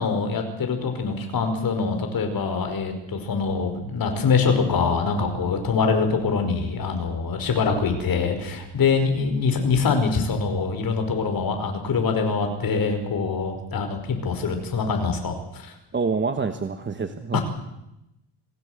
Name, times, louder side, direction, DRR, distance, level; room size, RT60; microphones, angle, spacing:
voice 1, 0.0-15.7 17.3-17.4, left 5 dB, 45° left, 5 dB, 5.2 m, -24 dB
voice 2, 15.9-17.4, right 4 dB, 25° right, 8 dB, 1.3 m, -26 dB
27.0 x 17.5 x 8.1 m, 0.88 s
cardioid pair, 135°, 47 cm